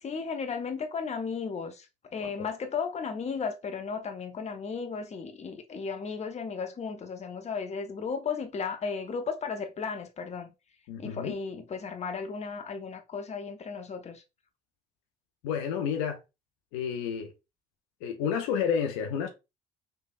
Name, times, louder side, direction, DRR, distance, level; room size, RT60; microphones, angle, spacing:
voice 1, 0.0-10.5 11.0-14.2, left 5 dB, 35° left, 0.7 m, -35 dB
voice 2, 10.9-11.3 15.4-16.2 16.7-17.3 18.0-19.3, left 7 dB, 75° left, 0.5 m, -30 dB
3.3 x 2.2 x 2.3 m
hypercardioid pair, 55°, 21 cm